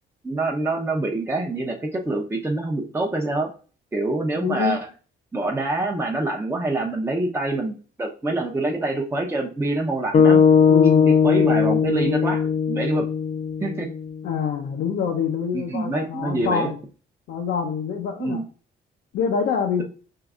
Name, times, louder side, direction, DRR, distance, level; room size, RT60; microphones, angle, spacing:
voice 1, 0.2-3.5 3.9-4.9 5.3-10.4 11.1-13.1 13.6-13.9 15.5-16.7 18.2-18.4, right 2 dB, 15° right, 1 dB, 0.6 m, -25 dB
voice 2, 4.4-4.8 10.7-11.1 14.2-16.8 17.3-18.4 19.1-19.8, left 6 dB, 80° left, 1 dB, 0.6 m, -25 dB
sound 1, 10.1-14.4, left 6 dB, 35° left, 0.4 m, -18 dB
4.6 x 3.1 x 2.4 m, 0.38 s
cardioid pair, 90°, 20 cm